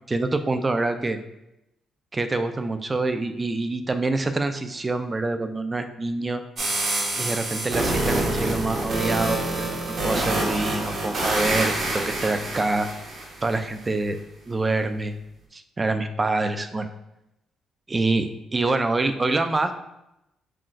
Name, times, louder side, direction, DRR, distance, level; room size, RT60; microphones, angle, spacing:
voice 1, 0.1-1.2 2.1-6.4 7.2-12.9 13.4-14.2 14.5-15.1 15.5-16.9 17.9-18.3 18.5-19.7, right 2 dB, 25° right, 8 dB, 0.3 m, -26 dB
sound 1, 6.6-13.6, right 2 dB, 60° right, 1.1 m, -26 dB
5.6 x 2.4 x 2.5 m, 0.88 s
cardioid pair, 90°, 0 cm